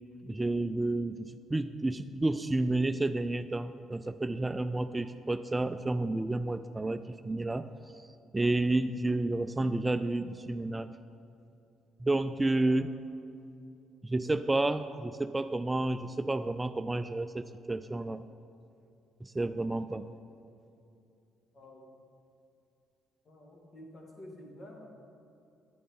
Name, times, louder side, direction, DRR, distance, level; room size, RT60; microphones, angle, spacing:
voice 1, 0.2-7.7 8.0-8.1 8.3-10.9 12.0-12.9 14.0-18.2 19.2-20.1, right 2 dB, 20° right, 10 dB, 0.3 m, -30 dB
voice 2, 23.3-24.9, left 1 dB, 50° left, -1 dB, 2.4 m, -50 dB
10.0 x 9.3 x 3.8 m, 2.6 s
supercardioid pair, 60°, 0 cm